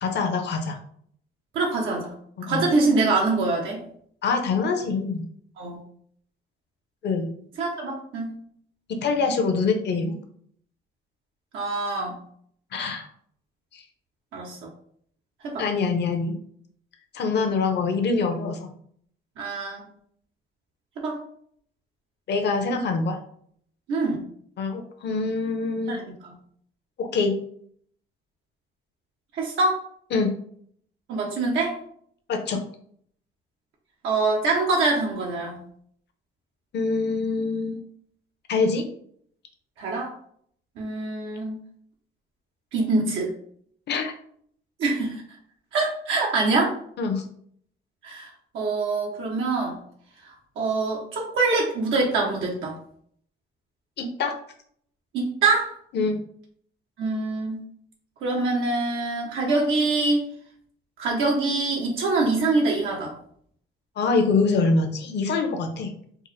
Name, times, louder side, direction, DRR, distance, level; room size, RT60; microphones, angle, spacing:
voice 1, 0.0-0.8 2.4-2.6 4.2-5.2 7.0-7.3 8.9-10.1 12.7-13.1 13.7-13.8 15.6-16.4 17.1-18.7 22.3-23.2 24.6-26.0 27.0-27.3 30.1-30.3 32.3-32.6 36.7-37.8 38.5-38.9 43.9-44.1 47.0-47.2 54.0-54.3 55.9-56.2 64.0-65.9, left 4 dB, 60° left, 5 dB, 0.7 m, -24 dB
voice 2, 1.5-2.1 2.5-3.8 5.6-5.8 7.6-8.3 11.5-12.2 14.3-14.6 15.4-15.6 19.4-19.8 21.0-21.2 23.9-24.2 25.9-26.0 29.3-29.8 31.1-31.7 34.0-35.6 39.8-40.1 40.8-41.6 42.7-43.3 44.8-45.2 45.7-46.7 48.0-48.3 48.5-49.8 50.6-52.7 55.1-55.7 57.0-57.6 58.2-60.2 61.0-63.1, right 3 dB, 85° right, -2 dB, 0.9 m, -24 dB
4.5 x 2.1 x 3.2 m, 0.63 s
cardioid pair, 90°, 20 cm